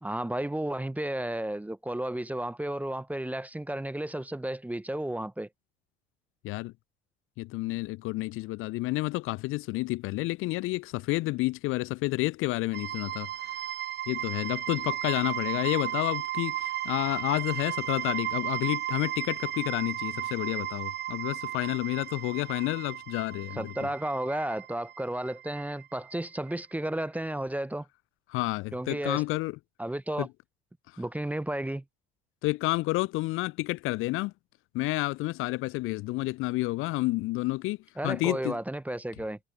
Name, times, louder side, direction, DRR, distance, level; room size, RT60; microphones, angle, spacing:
voice 1, 0.0-5.5 23.6-27.9 28.7-29.2 29.8-30.3 31.0-31.8 38.0-39.4, right 1 dB, 5° right, 0.9 m, -33 dB
voice 2, 7.4-13.6 14.1-23.7 28.3-29.6 30.2-30.3 30.9-31.0 32.4-34.3 34.7-37.8 38.0-38.6, left 20 dB, 45° left, 0.6 m, -30 dB
sound 1, 12.7-26.6, right 12 dB, 35° right, 1.0 m, -35 dB
figure-of-eight pair, 60°, 30 cm